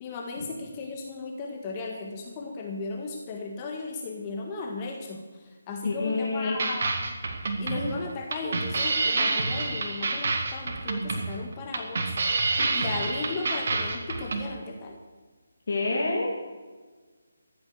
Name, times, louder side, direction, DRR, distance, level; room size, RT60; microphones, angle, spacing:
voice 1, 0.0-6.9 7.6-12.1 12.7-14.9, left 3 dB, 25° left, 1 dB, 1.6 m, -35 dB
voice 2, 5.8-6.6 12.6-12.7 15.7-16.4, left 3 dB, 55° left, -2 dB, 2.6 m, -27 dB
sound 1, 6.6-14.4, right 3 dB, 50° right, 2.0 m, -28 dB
14.5 x 9.2 x 6.7 m, 1.4 s
figure-of-eight pair, 155°, 0 cm